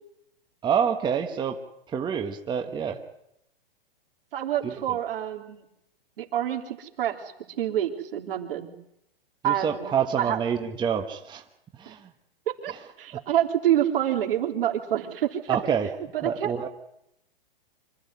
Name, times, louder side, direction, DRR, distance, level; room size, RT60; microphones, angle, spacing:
voice 1, 0.6-1.6 1.9-3.0 4.6-4.8 9.4-11.4 11.8-12.1 12.7-12.8 15.5-15.9 16.2-16.7, right 7 dB, 15° right, 5 dB, 1.3 m, -27 dB
voice 2, 4.3-5.6 6.2-7.2 7.6-8.7 9.4-9.9 10.2-10.4 11.9-12.0 12.5-12.7 13.0-15.6 16.1-16.7, right 11 dB, 70° right, 2 dB, 3.5 m, -27 dB
25.5 x 13.5 x 9.6 m, 0.80 s
hypercardioid pair, 140°, 29 cm